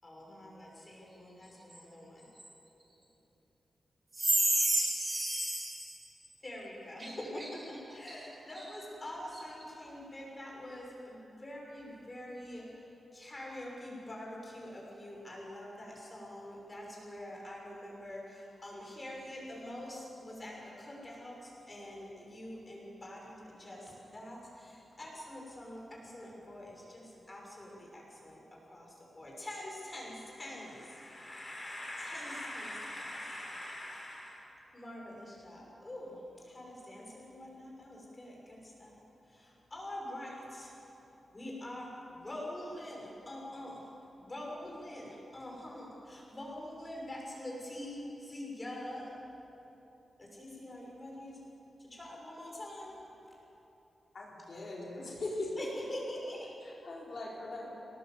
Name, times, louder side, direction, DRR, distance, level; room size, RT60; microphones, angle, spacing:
voice 1, 0.0-2.3 4.2-4.3 6.4-38.9 39.2-40.8 41.3-49.2 50.2-51.4 51.8-53.0 55.6-56.5, left 1 dB, 20° left, -3 dB, 6.3 m, -45 dB
voice 2, 4.1-6.0 7.0-7.5 8.2-8.3 8.5-8.7, right 1 dB, 30° right, -2 dB, 5.1 m, -31 dB
voice 3, 54.1-55.7 56.6-57.7, left 2 dB, 50° left, -4 dB, 4.4 m, -40 dB
26.0 x 19.0 x 7.9 m, 3.0 s
wide cardioid pair, 170°, 0 cm